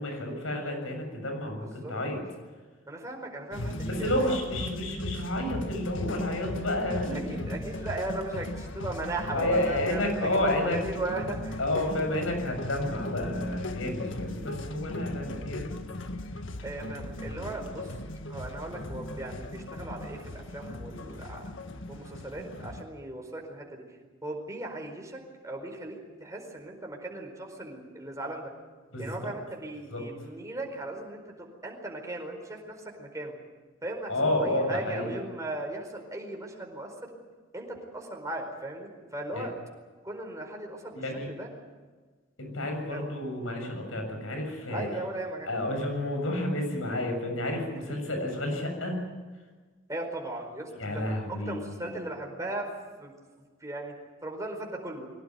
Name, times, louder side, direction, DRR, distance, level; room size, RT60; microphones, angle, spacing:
voice 1, 0.0-2.2 3.9-7.4 9.3-10.8 11.6-15.7 28.9-29.2 29.9-30.0 34.1-35.1 39.3-39.5 40.9-41.3 42.4-44.9 45.4-49.0 50.7-52.0, left 1 dB, 85° left, 4 dB, 7.2 m, -30 dB
voice 2, 1.6-1.9 2.9-4.4 7.1-11.6 16.6-17.9 18.2-21.4 21.9-23.8 24.2-28.5 29.0-33.3 33.8-37.1 37.5-39.5 40.0-41.5 42.9-43.1 44.7-45.5 47.9-48.0 49.9-52.7 53.0-55.1, right 2 dB, 15° right, 1 dB, 4.7 m, -37 dB
sound 1, 3.5-22.8, left 1 dB, 70° left, 1.7 m, -38 dB
22.0 x 18.5 x 9.5 m, 1.4 s
head